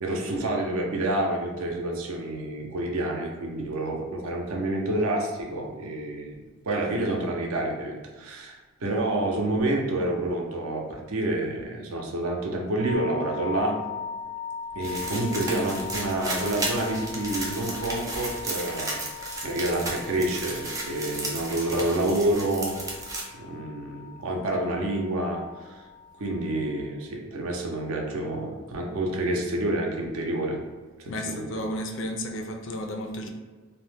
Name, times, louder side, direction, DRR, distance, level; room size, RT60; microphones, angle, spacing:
voice 1, 0.0-6.4 6.7-13.8 14.7-19.0 19.4-22.8 23.3-25.8 26.2-30.6 31.0-31.6, right 1 dB, 75° right, 1 dB, 0.5 m, -28 dB
sound 1, 12.8-26.8, left 6 dB, 35° right, 0.7 m, -40 dB
sound 2, 14.8-23.2, right 2 dB, 15° right, 0.4 m, -34 dB
voice 2, 31.1-33.3, equal, 55° left, 3 dB, 0.4 m, -32 dB
2.7 x 2.1 x 3.3 m, 1.3 s
head